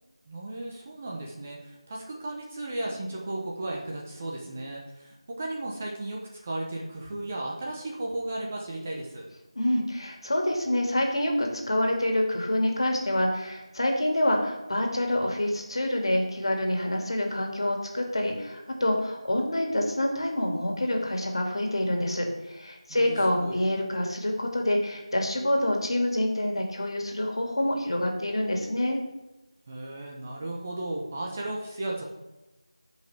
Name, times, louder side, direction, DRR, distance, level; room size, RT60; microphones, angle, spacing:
voice 1, 0.3-9.3 22.9-23.6 29.7-32.0, right 1 dB, 20° right, -2 dB, 0.9 m, -35 dB
voice 2, 9.6-29.0, left 1 dB, 55° left, 2 dB, 2.2 m, -27 dB
16.5 x 5.5 x 3.4 m, 1.1 s
figure-of-eight pair, 170°, 3 cm